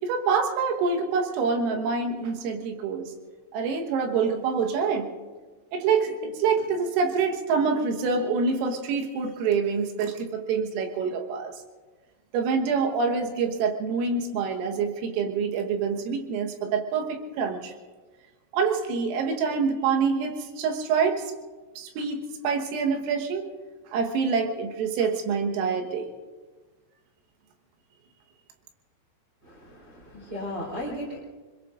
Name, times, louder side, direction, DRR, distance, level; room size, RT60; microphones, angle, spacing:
voice 1, 0.0-3.1 3.5-5.1 5.7-11.5 12.3-17.7 18.5-21.2 21.8-23.5 23.9-26.1, right 5 dB, 85° right, 3 dB, 4.0 m, -26 dB
voice 2, 29.4-31.2, left 1 dB, 25° right, -5 dB, 3.6 m, -36 dB
26.0 x 22.0 x 2.6 m, 1.3 s
omnidirectional pair, 5.9 m